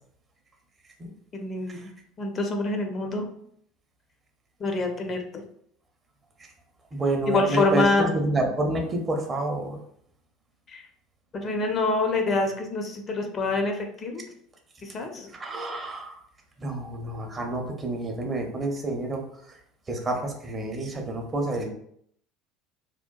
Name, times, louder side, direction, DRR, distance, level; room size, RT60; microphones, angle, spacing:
voice 1, 1.3-1.9 2.2-3.3 4.6-5.4 7.3-8.1 10.7-10.8 11.3-14.2 14.8-15.3, left 3 dB, 35° left, 4 dB, 0.4 m, -26 dB
voice 2, 6.9-9.8 15.3-16.2 16.6-19.5 19.9-21.7, right 2 dB, 25° right, 3 dB, 0.5 m, -29 dB
2.7 x 2.2 x 2.2 m, 0.68 s
figure-of-eight pair, 65°, 0 cm